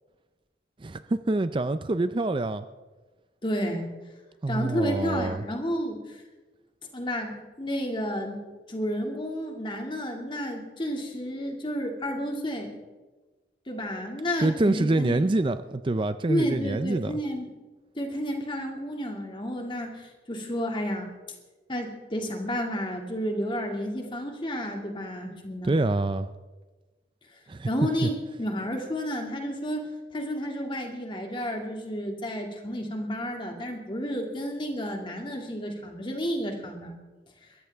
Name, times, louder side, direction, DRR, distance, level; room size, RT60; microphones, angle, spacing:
voice 1, 0.8-2.7 4.4-5.4 14.4-17.1 25.6-26.3 27.5-27.7 28.0-28.1, right 2 dB, 30° right, 12 dB, 0.4 m, -26 dB
voice 2, 3.4-3.9 4.5-6.2 6.9-8.4 8.7-12.8 13.7-15.2 16.3-17.5 17.9-21.1 21.7-25.8 27.7-36.9, equal, 30° left, 2 dB, 2.3 m, -31 dB
22.0 x 14.5 x 3.5 m, 1.2 s
head